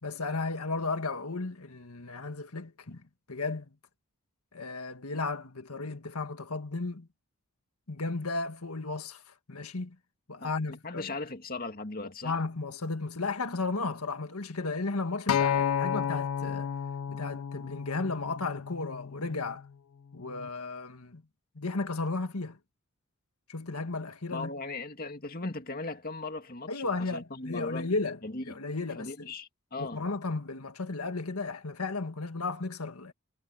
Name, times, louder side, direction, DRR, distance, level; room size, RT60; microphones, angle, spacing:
voice 1, 0.0-3.0 3.3-3.7 4.5-7.1 7.9-10.0 10.3-11.1 12.2-16.7 17.1-19.7 20.1-21.2 21.5-22.6 23.5-24.5 26.7-28.2 28.5-29.3 29.8-33.1, left 3 dB, 85° left, 1.7 m, -34 dB
voice 2, 10.8-12.4 24.3-27.9 28.2-28.6 28.9-30.0, left 3 dB, 40° left, 2.2 m, -38 dB
Acoustic guitar, 15.3-19.6 20.4-20.5, left 8 dB, 65° left, 0.4 m, -31 dB
head